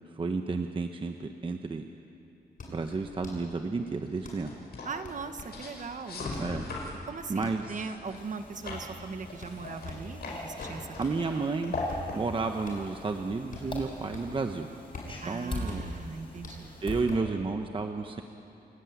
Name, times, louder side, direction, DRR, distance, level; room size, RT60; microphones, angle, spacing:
voice 1, 0.1-1.8 2.7-4.5 6.4-6.7 7.3-7.8 11.0-11.8 12.1-14.7 15.3-15.8 16.8-18.2, right 4 dB, 30° right, 6 dB, 0.9 m, -31 dB
sound 1, 2.4-11.3 11.7-14.5 14.8-17.4, left 3 dB, 50° left, 7.5 m, -46 dB
sound 2, 2.8-14.0, left 2 dB, 65° left, 5.5 m, -41 dB
voice 2, 4.8-6.4 7.1-11.5 15.2-16.7, right 4 dB, 45° right, 8 dB, 1.4 m, -40 dB
sound 3, 8.1-17.0, left 1 dB, 30° left, 5.8 m, -43 dB
29.5 x 14.0 x 9.6 m, 2.9 s
wide cardioid pair, 135°, 18 cm